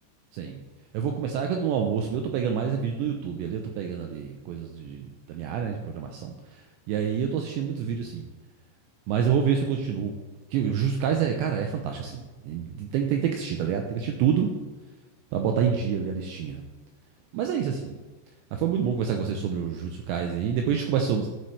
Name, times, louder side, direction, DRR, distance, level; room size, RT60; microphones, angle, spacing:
voice 1, 0.9-6.6 6.9-8.3 9.1-10.2 10.5-14.5 15.3-16.6 17.3-18.0 18.5-21.3, right 7 dB, 80° right, 3 dB, 2.7 m, -27 dB
12.0 x 8.3 x 3.3 m, 1.2 s
omnidirectional pair, 5.6 m